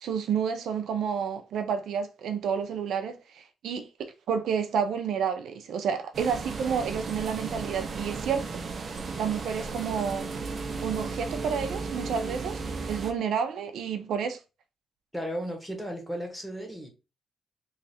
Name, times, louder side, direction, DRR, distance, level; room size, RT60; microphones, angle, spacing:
voice 1, 0.0-8.6 9.2-10.3 10.8-12.6 12.9-14.4, right 7 dB, 85° right, 0.5 m, -30 dB
sound 1, 6.1-13.1, right 4 dB, 40° right, 0.6 m, -35 dB
voice 2, 15.1-16.9, equal, ahead, 1.2 m, -35 dB
3.1 x 2.4 x 4.1 m
wide cardioid pair, 165°, 0 cm